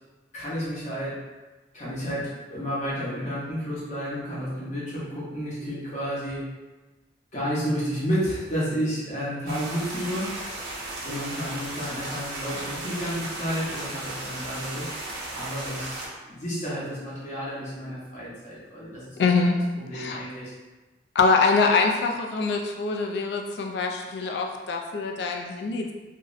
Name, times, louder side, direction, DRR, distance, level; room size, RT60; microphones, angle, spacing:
voice 1, 0.3-1.2 1.7-6.5 7.3-10.3 11.0-14.9 15.3-19.2 19.8-20.5, equal, 40° left, -8 dB, 0.8 m, -31 dB
sound 1, 9.5-16.1, right 2 dB, 75° right, 0.6 m, -35 dB
voice 2, 19.2-19.6 19.9-20.2 21.2-25.9, left 4 dB, 70° left, 2 dB, 0.3 m, -24 dB
2.6 x 2.0 x 2.5 m, 1.2 s
head